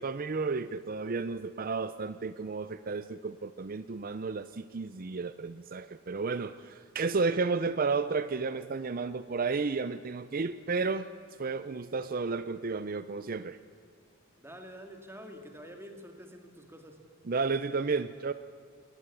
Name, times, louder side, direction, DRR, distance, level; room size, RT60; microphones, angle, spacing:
voice 1, 0.0-11.1 11.4-13.6 17.3-18.3, right 4 dB, 40° right, 13 dB, 0.5 m, -32 dB
voice 2, 14.4-17.0, equal, 10° right, 5 dB, 2.1 m, -47 dB
21.5 x 19.0 x 8.4 m, 2.3 s
head